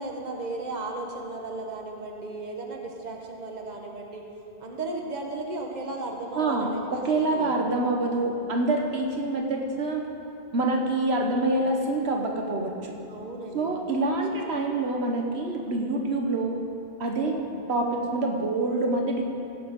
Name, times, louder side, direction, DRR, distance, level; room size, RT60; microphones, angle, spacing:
voice 1, 0.0-4.2 4.6-7.5 7.8-8.0 13.1-13.7 14.3-14.4, right 2 dB, 45° right, 1 dB, 1.4 m, -35 dB
voice 2, 6.3-10.0 10.5-12.9 13.5-16.6 17.0-17.4 17.7-19.2, right 2 dB, 80° right, 1 dB, 1.3 m, -26 dB
17.5 x 7.6 x 5.2 m, 2.8 s
omnidirectional pair, 1.1 m